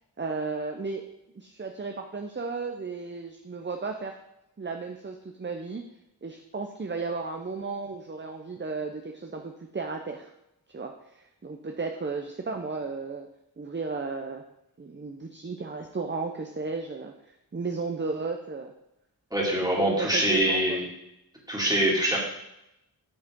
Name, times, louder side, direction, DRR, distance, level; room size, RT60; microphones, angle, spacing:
voice 1, 0.2-1.0 1.3-4.1 4.6-5.8 6.2-10.3 10.7-13.3 13.6-14.4 14.8-18.7 19.8-20.8, right 4 dB, 30° right, 4 dB, 0.7 m, -34 dB
voice 2, 19.3-20.8 21.5-22.2, right 1 dB, 10° right, -3 dB, 2.5 m, -24 dB
8.8 x 6.2 x 3.7 m, 0.86 s
wide cardioid pair, 75°, 38 cm